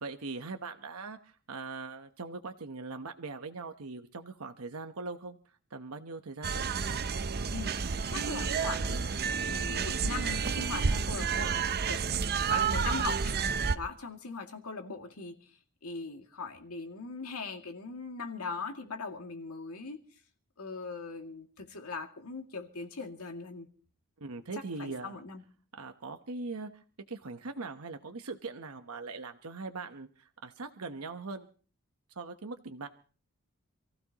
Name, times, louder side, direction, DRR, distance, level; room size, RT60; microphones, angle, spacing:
voice 1, 0.0-5.4 5.7-6.7 13.6-13.7 24.2-25.2 25.7-31.5 32.1-32.9, right 3 dB, 75° right, 6 dB, 1.0 m, -41 dB
sound 1, 6.4-13.8, right 5 dB, 45° right, 0.7 m, -30 dB
voice 2, 7.5-9.0 9.4-12.1 12.5-13.4 13.7-15.3 15.8-20.0 20.6-23.7 24.8-25.4, left 4 dB, 85° left, 3 dB, 2.4 m, -40 dB
28.0 x 15.5 x 2.9 m, 0.39 s
head